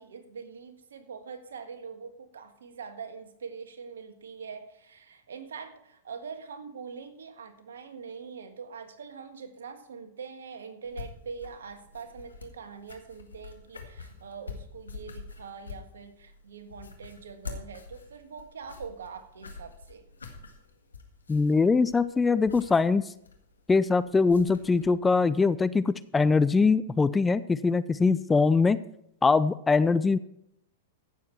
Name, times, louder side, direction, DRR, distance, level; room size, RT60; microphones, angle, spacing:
voice 1, 0.0-20.0, right 5 dB, 75° right, 8 dB, 1.5 m, -43 dB
sound 1, 10.8-24.9, left 5 dB, 90° left, 1.8 m, -46 dB
voice 2, 21.3-23.1 23.7-28.8 29.2-30.2, left 4 dB, 15° left, 15 dB, 0.4 m, -22 dB
15.5 x 7.2 x 4.5 m, 0.76 s
hypercardioid pair, 105°, 0 cm